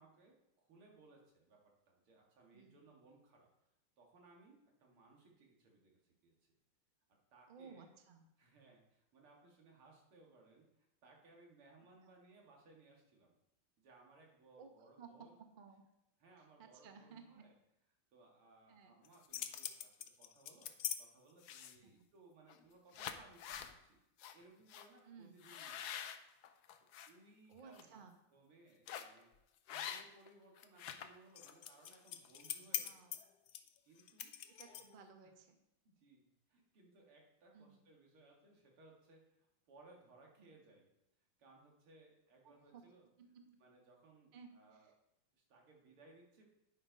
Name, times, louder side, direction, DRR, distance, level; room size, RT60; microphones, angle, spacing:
voice 1, 0.0-1.6 1.9-3.5 4.0-6.3 7.1-7.9 8.4-13.3 13.8-15.3 16.2-17.5 18.1-24.0 24.3-26.1 27.1-28.0 28.3-29.3 29.7-33.0 33.8-34.3 34.7-34.8 35.2-35.3 35.8-40.9 41.4-43.0 43.6-44.9 45.3-46.4, right 3 dB, 80° right, -1 dB, 2.8 m, -64 dB
voice 2, 7.5-8.2 12.0-12.2 14.6-15.8 16.4-17.5 18.7-19.0 21.8-22.1 25.0-25.4 27.5-28.2 32.8-33.2 34.5-35.6 37.5-37.8 40.4-40.5 42.4-42.8 43.2-43.5 44.3-44.9, right 6 dB, 50° right, 5 dB, 0.6 m, -58 dB
sound 1, 19.0-21.0 21.4-21.9 22.5-22.6 22.9-23.7 24.2-24.3 24.7-24.9 25.4-27.1 27.6-27.8 28.9-29.2 29.7-30.3 30.6-35.0, left 10 dB, 80° left, 0.9 m, -44 dB
9.8 x 5.5 x 5.2 m, 0.84 s
omnidirectional pair, 2.4 m